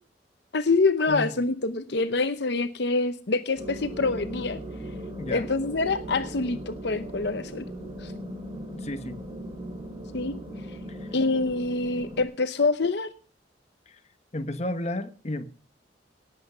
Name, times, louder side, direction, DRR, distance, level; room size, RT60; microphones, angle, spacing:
voice 1, 0.5-4.6 5.3-7.6 8.0-8.1 10.1-10.3 11.1-13.1, left 3 dB, 60° left, 11 dB, 0.8 m, -26 dB
sound 1, 3.6-12.2, equal, 20° right, 5.6 m, -38 dB
voice 2, 8.8-9.2 10.9-11.1 14.3-15.5, left 1 dB, 35° left, 9 dB, 1.1 m, -32 dB
18.5 x 8.1 x 5.6 m, 0.40 s
head